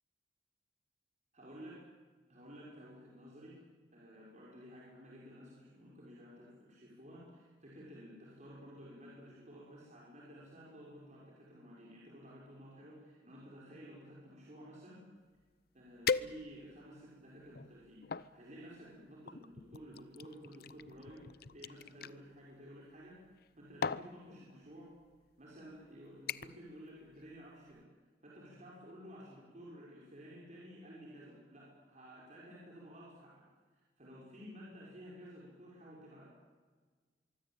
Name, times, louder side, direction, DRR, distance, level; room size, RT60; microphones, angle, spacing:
voice 1, 1.3-1.8 2.3-3.6 3.9-15.0 15.7-23.2 23.6-24.9 25.4-27.9 28.2-33.5 33.7-36.2, equal, 40° right, -5 dB, 6.0 m, -53 dB
sound 1, 15.4-15.5 16.1-16.8 17.4-18.3 19.3-22.2 23.3-23.5 23.8-24.1 25.0-25.2 25.6-25.9 26.3-26.7 27.0-27.4 27.7-27.8, left 5 dB, 60° left, 0.7 m, -39 dB
24.5 x 24.0 x 9.0 m, 1.5 s
head